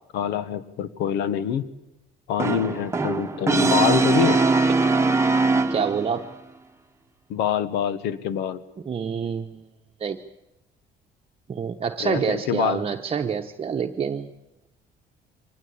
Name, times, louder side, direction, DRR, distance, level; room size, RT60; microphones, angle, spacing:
voice 1, 0.1-1.6 2.3-4.4 7.3-8.6 12.0-12.8, left 9 dB, 90° left, 14 dB, 1.3 m, -25 dB
Brass instrument, 2.4-6.2, right 3 dB, 15° right, 1.1 m, -21 dB
voice 2, 5.7-6.3 8.9-9.7 10.0-10.2 11.5-14.3, right 6 dB, 35° right, 4 dB, 1.0 m, -27 dB
24.0 x 19.0 x 8.6 m, 0.93 s
cardioid pair, 110°, 17 cm